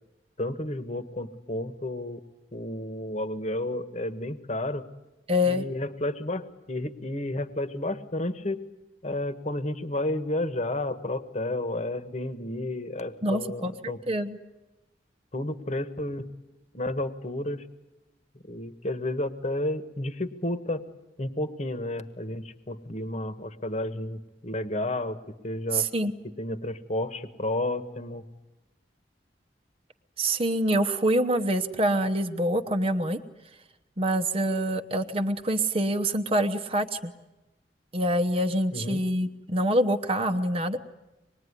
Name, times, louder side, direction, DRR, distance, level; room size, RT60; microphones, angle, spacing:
voice 1, 0.4-2.2 2.5-4.8 5.4-8.6 9.0-14.0 15.3-16.3 16.7-17.6 18.5-20.8 21.2-25.2 25.4-25.9 26.2-28.2 38.7-39.0, left 1 dB, 40° left, 10 dB, 1.4 m, -31 dB
voice 2, 5.3-5.7 13.2-13.7 14.1-14.4 25.7-26.1 30.2-33.2 34.0-37.1 37.9-40.8, right 1 dB, 35° right, 6 dB, 1.0 m, -25 dB
25.5 x 20.5 x 9.8 m, 1.0 s
head